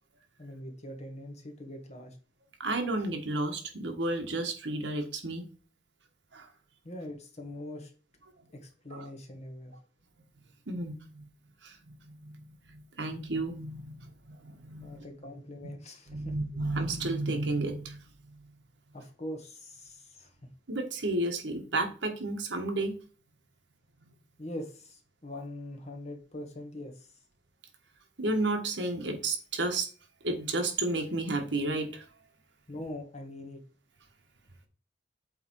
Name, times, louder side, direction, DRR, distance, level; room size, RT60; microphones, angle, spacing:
voice 1, 0.4-2.2 6.8-7.9 8.5-9.8 14.8-16.3 18.9-20.5 24.4-27.2 32.7-33.6, left 1 dB, 40° left, 4 dB, 1.5 m, -42 dB
voice 2, 2.6-5.4 6.3-6.5 8.9-9.0 10.7-11.2 11.6-15.0 16.1-18.0 18.3-18.4 20.7-22.9 28.2-29.9 30.2-32.0, right 2 dB, 75° right, 4 dB, 1.4 m, -32 dB
8.1 x 3.5 x 4.6 m, 0.38 s
head